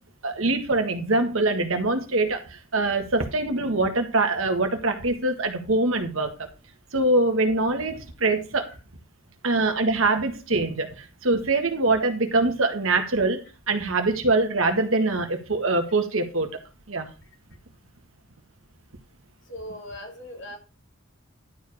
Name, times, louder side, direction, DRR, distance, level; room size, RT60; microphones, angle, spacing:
voice 1, 0.2-6.5 6.9-8.7 9.4-13.4 13.7-16.6 16.9-17.1, right 2 dB, 75° right, 5 dB, 1.7 m, -24 dB
voice 2, 19.4-20.6, left 1 dB, 60° left, 1 dB, 2.9 m, -39 dB
11.5 x 5.0 x 4.9 m, 0.33 s
head